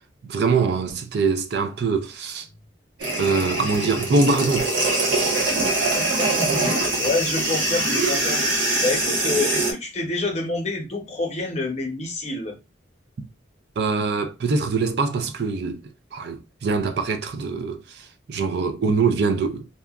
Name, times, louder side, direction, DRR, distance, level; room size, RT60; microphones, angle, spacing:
voice 1, 0.2-2.5 3.2-4.7 13.2-13.3 13.8-15.8 16.1-19.7, right 4 dB, 60° right, 0.4 m, -23 dB
sound 1, 3.0-9.7, right 2 dB, 90° right, 1.0 m, -23 dB
voice 2, 5.8-6.4 6.6-8.4 8.8-12.6, left 2 dB, 35° left, 0.7 m, -27 dB
2.8 x 2.2 x 2.3 m
head